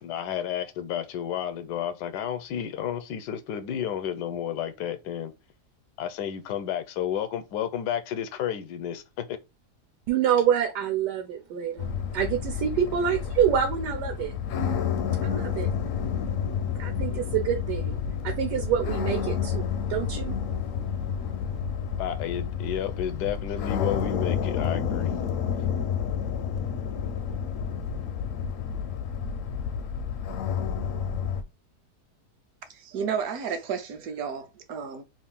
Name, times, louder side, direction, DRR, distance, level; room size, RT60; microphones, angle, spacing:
voice 1, 0.0-5.3 6.0-9.4 22.0-25.1, left 9 dB, 85° left, 1.2 m, -31 dB
voice 2, 10.1-14.3 15.2-15.7 16.8-18.0 18.2-20.3, right 9 dB, 85° right, 1.3 m, -27 dB
sound 1, 11.8-31.4, left 7 dB, 70° left, 0.8 m, -30 dB
voice 3, 32.7-35.0, right 6 dB, 70° right, 1.1 m, -32 dB
3.1 x 2.4 x 3.5 m
omnidirectional pair, 1.8 m